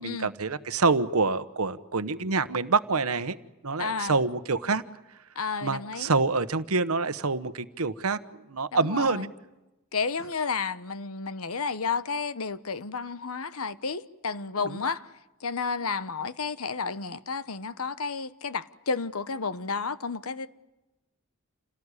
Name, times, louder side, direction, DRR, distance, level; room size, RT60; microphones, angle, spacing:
voice 1, 0.0-3.4 3.6-4.8 5.6-8.2 8.5-9.3 14.6-14.9, right 4 dB, 80° right, 1.1 m, -26 dB
voice 2, 3.8-4.1 5.4-6.1 8.9-9.2 9.9-15.0 15.4-20.5, left 5 dB, 75° left, 1.1 m, -31 dB
28.5 x 18.5 x 9.8 m
head